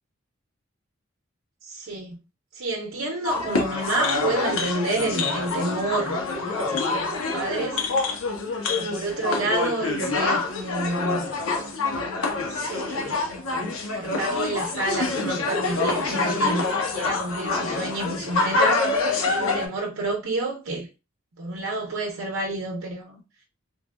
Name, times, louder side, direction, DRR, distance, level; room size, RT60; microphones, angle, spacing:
voice 1, 1.6-2.2 2.5-7.9 8.6-11.3 12.0-20.9 21.4-23.2, right 2 dB, 80° right, 0.6 m, -30 dB
sound 1, 3.2-19.7, left 3 dB, 85° left, 0.7 m, -26 dB
3.2 x 2.2 x 2.2 m
head